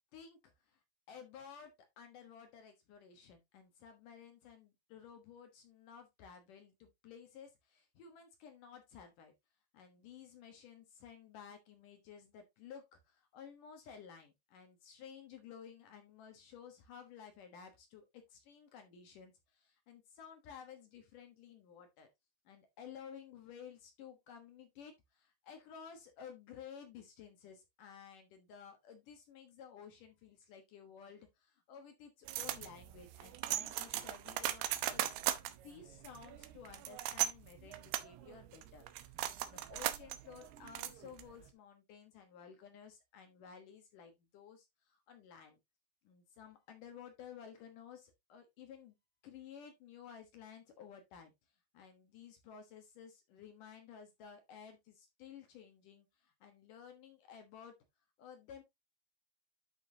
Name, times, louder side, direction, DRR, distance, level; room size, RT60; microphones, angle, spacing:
voice 1, 0.1-0.8 1.1-9.3 9.7-22.1 22.5-35.2 35.6-45.6 46.0-49.0 49.2-51.3 51.7-57.7 58.2-58.6, left 7 dB, 65° left, 2.5 m, -54 dB
sound 1, 32.3-41.5, right 13 dB, 80° right, 2.8 m, -39 dB
10.5 x 6.1 x 2.7 m
omnidirectional pair, 4.7 m